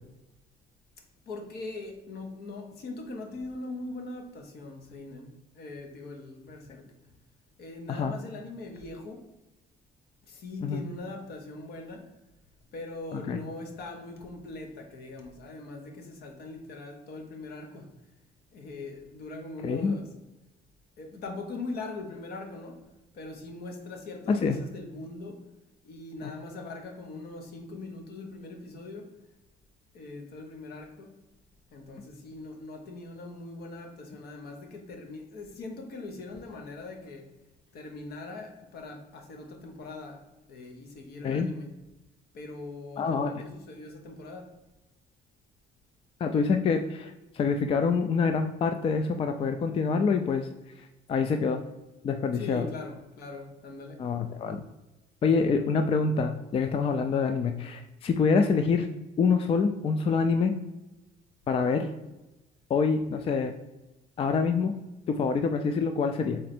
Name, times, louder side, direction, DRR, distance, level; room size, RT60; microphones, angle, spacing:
voice 1, 1.3-7.1 7.6-9.2 10.3-12.1 12.7-17.9 18.5-20.1 21.0-22.8 23.1-25.5 25.8-29.1 29.9-31.2 31.7-37.4 37.7-41.7 42.3-44.6 52.3-54.0, left 2 dB, 65° left, 3 dB, 1.0 m, -41 dB
voice 2, 19.6-20.0 24.3-24.6 26.2-26.3 41.2-41.5 43.0-43.4 46.2-50.5 50.8-51.6 52.0-52.7 54.0-54.6 55.2-58.9 59.2-60.5 61.5-61.9 62.7-63.5 64.2-64.7 65.1-66.4, left 5 dB, 35° left, 6 dB, 0.3 m, -26 dB
3.8 x 3.2 x 4.3 m, 1.0 s
cardioid pair, 110°, 17 cm